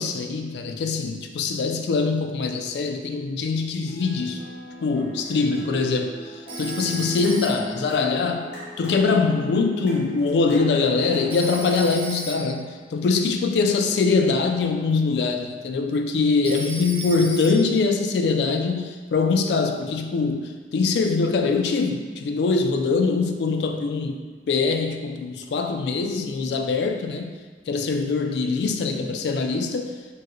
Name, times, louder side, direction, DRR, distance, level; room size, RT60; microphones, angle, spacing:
voice 1, 0.0-4.4 4.8-8.5 8.8-27.4 27.7-29.9, left 4 dB, 65° left, 5 dB, 0.3 m, -23 dB
sound 1, 3.9-11.6, equal, 90° left, 1.2 m, -38 dB
Telephone, 6.5-7.9 11.3-12.7 16.4-17.9, right 2 dB, 30° right, 0.3 m, -36 dB
4.4 x 2.1 x 3.0 m, 1.5 s
head